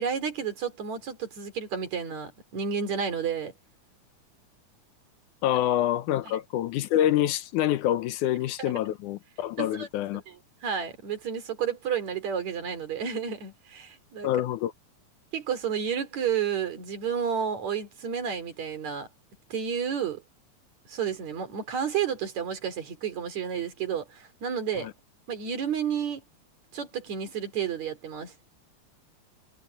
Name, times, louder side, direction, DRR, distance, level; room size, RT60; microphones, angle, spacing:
voice 1, 0.0-3.5 6.3-6.4 8.6-9.0 9.6-9.9 10.1-10.4 10.6-14.3 15.3-19.1 19.5-20.2 20.9-24.9 25.3-26.2 26.7-28.3, right 7 dB, 65° right, 4.4 m, -31 dB
voice 2, 5.4-10.2 14.2-14.7 24.8-24.9, left 12 dB, 85° left, 2.3 m, -26 dB
omnidirectional pair, 3.5 m